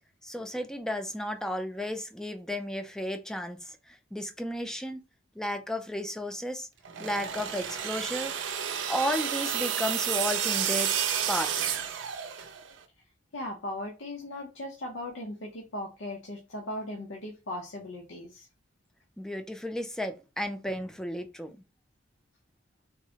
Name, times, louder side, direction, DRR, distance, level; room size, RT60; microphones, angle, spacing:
voice 1, 0.2-5.0 5.4-6.7 7.0-8.3 8.9-10.9 11.3-11.9 19.2-21.5, equal, 5° left, 0.3 m, -33 dB
sound 1, 6.8-12.7, right 9 dB, 80° right, 0.5 m, -31 dB
voice 2, 13.3-18.5, left 1 dB, 85° left, 0.7 m, -38 dB
3.7 x 2.1 x 2.7 m
head